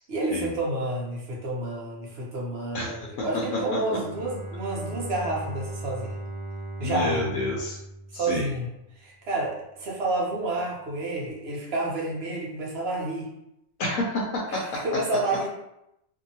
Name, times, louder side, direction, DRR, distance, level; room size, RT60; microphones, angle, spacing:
voice 1, 0.1-6.2 6.8-7.3 8.1-8.7 9.0-13.3 14.5-15.5, right 2 dB, 55° right, -3 dB, 0.9 m, -30 dB
voice 2, 2.7-3.1 3.3-3.6 6.8-7.8 8.1-8.5 13.8-14.8, left 2 dB, 85° left, -3 dB, 1.0 m, -29 dB
Bowed string instrument, 3.9-8.9, right 1 dB, 85° right, 1.4 m, -37 dB
2.7 x 2.6 x 2.7 m, 0.84 s
omnidirectional pair, 1.4 m